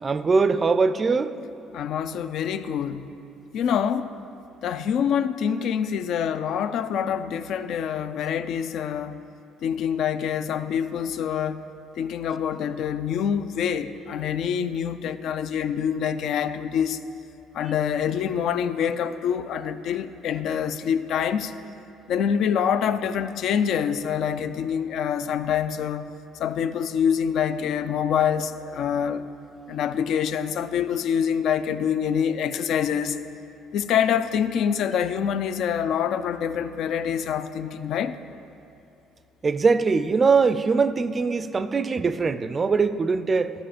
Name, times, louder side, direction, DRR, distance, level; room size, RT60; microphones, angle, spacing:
voice 1, 0.0-1.3 39.4-43.5, right 4 dB, 30° right, 12 dB, 0.4 m, -22 dB
voice 2, 1.7-3.1 3.5-4.1 4.6-9.2 9.6-11.6 12.0-17.0 17.5-21.5 22.1-26.1 26.4-29.2 29.7-33.2 33.7-38.1, left 8 dB, 65° left, 12 dB, 0.4 m, -26 dB
12.5 x 4.9 x 5.0 m, 2.9 s
cardioid pair, 100°, 0 cm